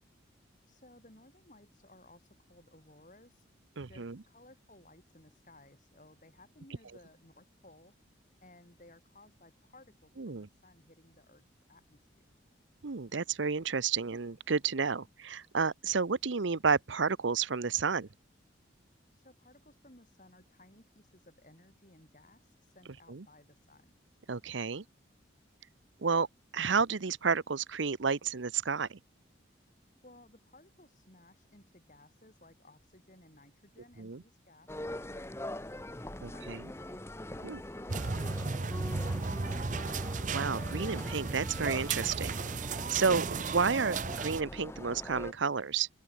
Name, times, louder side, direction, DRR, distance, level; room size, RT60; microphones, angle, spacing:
voice 1, 0.7-3.4 3.9-7.9 8.4-12.3 14.9-15.1 19.1-23.9 30.0-36.7, left 1 dB, 40° left, 6.6 m, -60 dB
voice 2, 3.8-4.2 10.2-10.5 12.8-18.1 23.1-23.2 24.3-24.8 26.0-26.3 26.5-29.0 34.0-34.2 36.2-36.6 37.4-37.6 40.3-42.3 42.9-45.9, right 5 dB, 75° right, 0.8 m, -31 dB
sound 1, 34.7-45.3, left 1 dB, 15° left, 0.9 m, -43 dB
sound 2, 37.9-44.4, right 4 dB, 40° right, 0.6 m, -35 dB
open air
head